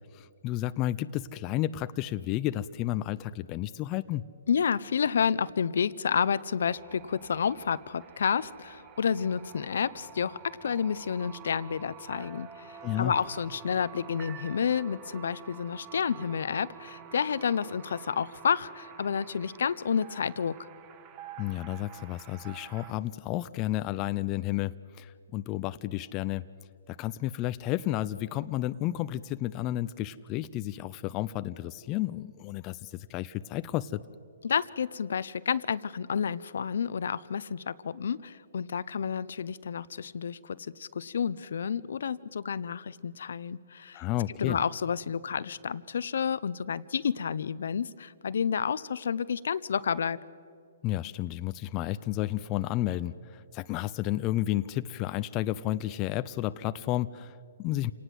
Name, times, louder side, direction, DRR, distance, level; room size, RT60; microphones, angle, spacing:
voice 1, 0.1-4.3 12.8-13.2 21.4-26.5 26.9-34.0 43.9-44.6 50.8-57.9, left 14 dB, 25° left, 13 dB, 0.5 m, -32 dB
voice 2, 4.5-20.6 34.4-44.0 44.4-50.2, left 7 dB, 70° left, 17 dB, 0.7 m, -30 dB
sound 1, 6.7-22.9, right 8 dB, 25° right, 1.3 m, -48 dB
28.0 x 18.5 x 7.8 m, 2.4 s
hypercardioid pair, 150°, 0 cm